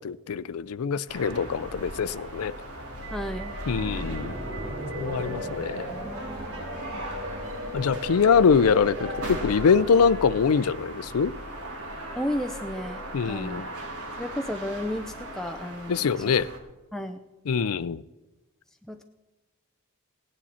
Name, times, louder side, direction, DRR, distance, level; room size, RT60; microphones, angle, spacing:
voice 1, 0.0-2.5 3.7-4.3 5.0-5.9 7.7-11.3 13.1-13.7 15.9-16.5 17.5-18.0, left 6 dB, 70° left, 0.4 m, -23 dB
sound 1, 1.1-16.6, right 1 dB, 75° right, 2.2 m, -38 dB
voice 2, 3.1-3.5 6.9-7.6 12.2-13.6 14.2-16.4 16.9-17.2 18.8-19.0, left 1 dB, ahead, 0.5 m, -33 dB
sound 2, 3.7-10.1, equal, 40° right, 4.5 m, -37 dB
sound 3, 8.6-14.2, right 2 dB, 55° right, 5.2 m, -55 dB
17.0 x 10.0 x 4.2 m
head